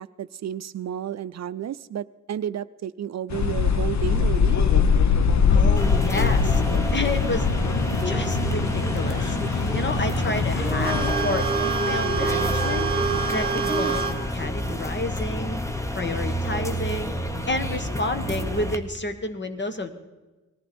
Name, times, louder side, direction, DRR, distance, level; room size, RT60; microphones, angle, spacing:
voice 1, 0.0-4.6, right 9 dB, 60° right, 14 dB, 0.5 m, -32 dB
sound 1, 3.3-11.1, left 6 dB, 65° left, 0.9 m, -22 dB
voice 2, 5.5-6.6 6.9-7.5 8.0-12.9 13.3-15.6 15.9-19.9, left 2 dB, 35° left, 9 dB, 1.4 m, -30 dB
sound 2, 5.8-18.8, equal, 10° left, 1.0 m, -28 dB
sound 3, 10.8-14.1 14.5-14.6 15.4-15.6 17.8-17.9 18.5-18.6, right 5 dB, 20° right, 2.6 m, -26 dB
19.5 x 14.0 x 4.3 m, 1.1 s
wide cardioid pair, 100°, 30 cm